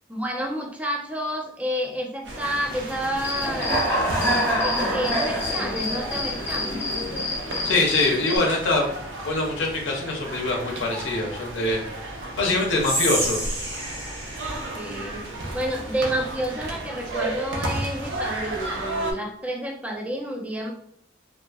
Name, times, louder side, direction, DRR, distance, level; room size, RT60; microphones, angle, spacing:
voice 1, 0.1-3.8 4.6-6.8 14.5-15.3 15.5-20.7, equal, 10° right, 0 dB, 0.3 m, -30 dB
sound 1, 2.2-19.1, right 2 dB, 70° right, 0.6 m, -34 dB
Human voice / Cricket, 3.2-8.4, equal, 15° left, 0.7 m, -26 dB
voice 2, 7.6-8.9 9.2-11.8 12.4-13.5, left 2 dB, 80° left, 0 dB, 0.5 m, -24 dB
Whispering, 12.8-16.0, right 1 dB, 35° right, 0.7 m, -30 dB
2.4 x 2.3 x 2.4 m, 0.69 s
head